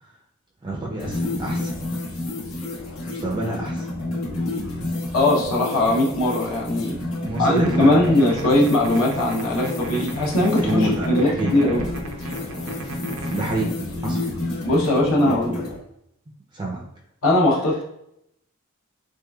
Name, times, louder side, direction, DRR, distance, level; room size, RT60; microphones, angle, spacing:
voice 1, 0.6-1.7 3.1-3.9 7.2-8.1 10.6-11.6 13.0-13.7 14.0-14.2 15.2-15.4 16.5-16.8, right 2 dB, 20° right, -1 dB, 0.4 m, -27 dB
sound 1, 1.0-15.8, left 2 dB, 90° left, 1.0 m, -29 dB
voice 2, 5.1-7.0 7.4-11.8 14.6-15.7 17.2-17.8, left 1 dB, 70° left, -3 dB, 0.7 m, -20 dB
sound 2, 7.3-13.7, right 1 dB, 90° right, 0.5 m, -35 dB
3.6 x 3.2 x 2.2 m, 0.78 s
head